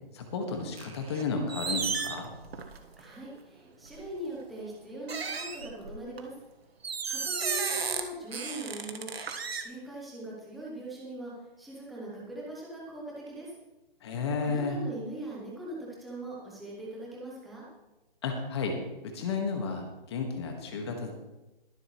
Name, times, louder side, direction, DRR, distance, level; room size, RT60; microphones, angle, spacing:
voice 1, 0.1-2.3 14.0-14.8 18.2-18.8 19.0-21.1, left 4 dB, 25° left, 3 dB, 1.7 m, -32 dB
sound 1, 0.8-1.2 1.5-3.0 3.8-4.1 5.1-6.2 6.8-8.0 8.3-9.6, right 5 dB, 85° right, 1.6 m, -33 dB
voice 2, 3.0-6.3 7.1-9.1 9.6-11.3 11.6-13.5 14.4-17.6, right 1 dB, ahead, -7 dB, 0.7 m, -41 dB
22.5 x 7.8 x 3.2 m, 1.0 s
hypercardioid pair, 170°, 30 cm